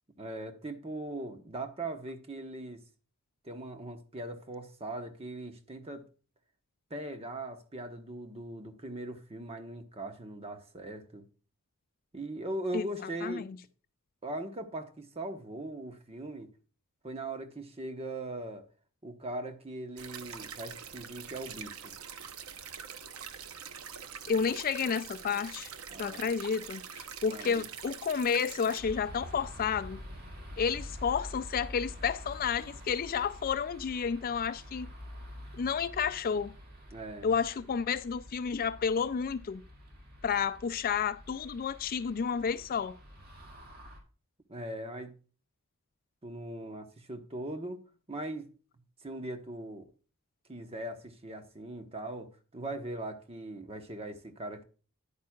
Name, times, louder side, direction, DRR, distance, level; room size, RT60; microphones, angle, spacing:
voice 1, 0.2-2.8 3.4-6.1 6.9-11.3 12.1-13.5 14.2-16.5 17.0-18.6 19.0-21.9 25.9-26.2 27.3-27.6 36.9-37.3 44.5-45.1 46.2-47.8 48.1-48.5 49.0-49.9 50.5-54.6, right 1 dB, 25° right, 1.0 m, -40 dB
voice 2, 13.2-13.6 24.3-25.7 26.0-30.0 30.6-34.9 35.5-36.5 37.2-39.6 40.2-43.0, left 6 dB, 40° left, 0.4 m, -31 dB
sound 1, 20.0-28.8, right 7 dB, 75° right, 0.8 m, -44 dB
sound 2, 28.8-44.0, equal, 45° right, 2.0 m, -47 dB
10.5 x 9.0 x 2.3 m
head